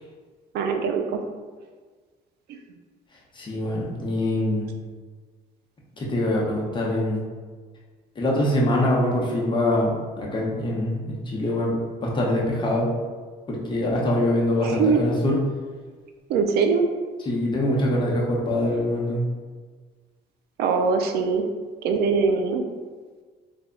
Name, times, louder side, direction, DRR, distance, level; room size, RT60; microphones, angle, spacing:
voice 1, 0.5-1.2 14.6-15.0 16.3-16.9 20.6-21.4 21.8-22.6, right 5 dB, 75° right, 5 dB, 0.4 m, -22 dB
voice 2, 3.3-4.7 6.0-7.2 8.2-11.7 12.0-12.9 13.5-15.4 17.2-19.2, left 1 dB, 30° left, -3 dB, 0.9 m, -24 dB
3.4 x 2.2 x 3.8 m, 1.5 s
cardioid pair, 110°, 17 cm